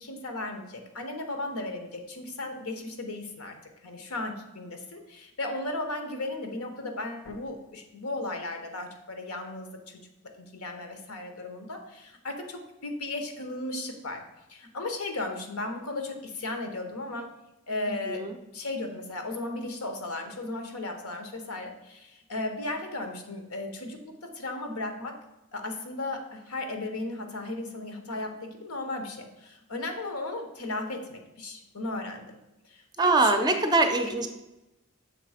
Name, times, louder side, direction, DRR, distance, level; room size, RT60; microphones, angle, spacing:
voice 1, 0.0-3.6 3.8-10.0 10.4-14.2 14.5-17.3 17.7-18.3 18.5-25.1 25.5-32.4 32.7-33.6 34.1-34.3, left 2 dB, 85° left, 5 dB, 1.0 m, -35 dB
voice 2, 17.9-18.3 33.0-34.3, right 3 dB, 20° right, 5 dB, 0.5 m, -23 dB
6.7 x 3.3 x 4.9 m, 0.95 s
head